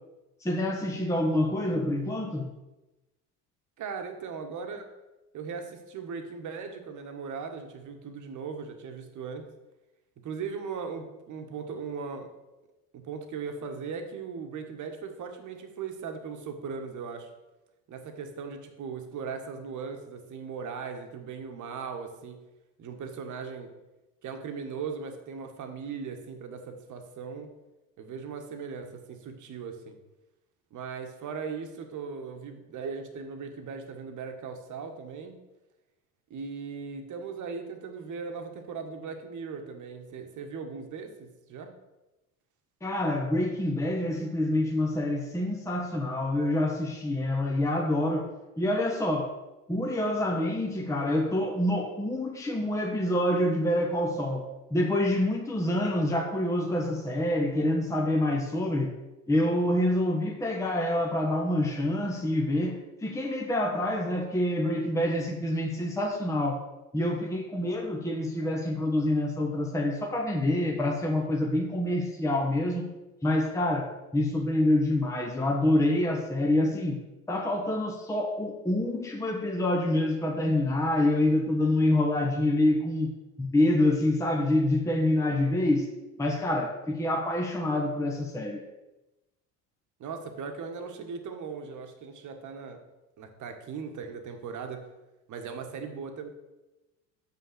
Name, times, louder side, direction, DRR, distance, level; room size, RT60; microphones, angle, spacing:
voice 1, 0.4-2.5 42.8-48.3 48.6-49.3 49.7-59.0 59.3-66.6 66.9-72.9 73.2-77.0 77.3-83.1 83.4-88.6, left 1 dB, 5° left, 1 dB, 1.1 m, -27 dB
voice 2, 3.8-4.9 5.3-9.5 10.2-12.3 12.9-17.3 17.9-22.4 22.8-23.7 24.2-27.5 28.0-30.0 30.7-35.4 36.3-41.7 90.0-92.8 93.2-94.8 95.3-96.3, right 5 dB, 40° right, 5 dB, 1.5 m, -38 dB
7.0 x 5.6 x 6.6 m, 1.0 s
figure-of-eight pair, 65°, 45 cm